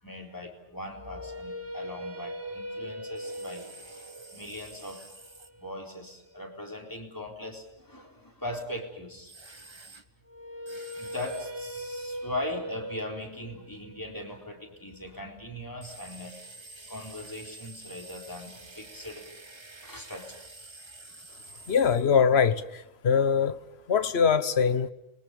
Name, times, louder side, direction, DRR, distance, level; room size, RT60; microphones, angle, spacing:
voice 1, 0.0-3.7 4.3-5.0 5.6-9.3 11.0-16.4 16.9-19.3 19.8-20.4, left 1 dB, 15° left, 1 dB, 4.2 m, -39 dB
sound 1, 0.9-7.0 10.3-16.3, equal, 50° right, 1.9 m, -41 dB
sound 2, 3.1-5.5 9.3-10.0 10.7-11.5 15.8-22.1, right 2 dB, 25° right, 1.5 m, -49 dB
voice 2, 21.7-23.6 23.9-24.9, left 6 dB, 60° left, 13 dB, 1.3 m, -23 dB
30.0 x 22.5 x 7.0 m, 0.89 s
omnidirectional pair, 1.3 m